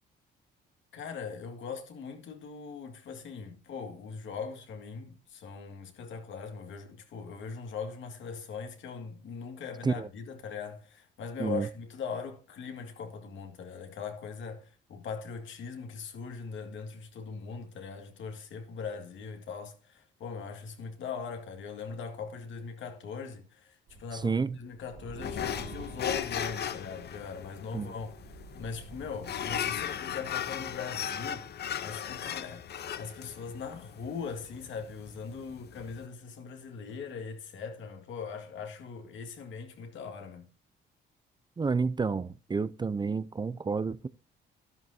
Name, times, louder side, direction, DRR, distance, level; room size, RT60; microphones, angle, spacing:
voice 1, 0.9-40.5, left 5 dB, 75° left, 2.0 m, -40 dB
sound 1, 23.9-27.6 28.0-30.6, right 2 dB, 80° right, 4.4 m, -48 dB
voice 2, 24.1-24.6 27.7-27.9 41.6-44.1, right 4 dB, 20° right, 0.4 m, -30 dB
sound 2, 25.2-36.0, left 9 dB, 55° left, 0.8 m, -37 dB
12.5 x 11.5 x 2.7 m
cardioid pair, 90°, 20 cm